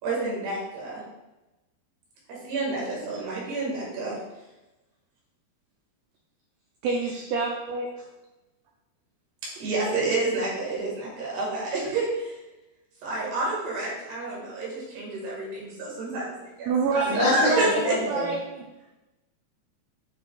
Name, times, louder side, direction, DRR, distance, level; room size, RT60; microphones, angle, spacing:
voice 1, 0.0-1.0 2.3-4.2 9.4-12.4 13.0-18.0, right 3 dB, 70° right, -5 dB, 3.9 m, -29 dB
voice 2, 6.8-7.9 16.7-17.8 18.1-18.4, right 4 dB, 85° right, -1 dB, 2.0 m, -26 dB
voice 3, 17.1-18.3, left 2 dB, 75° left, -3 dB, 3.6 m, -25 dB
9.3 x 4.8 x 2.4 m, 1.0 s
omnidirectional pair, 4.9 m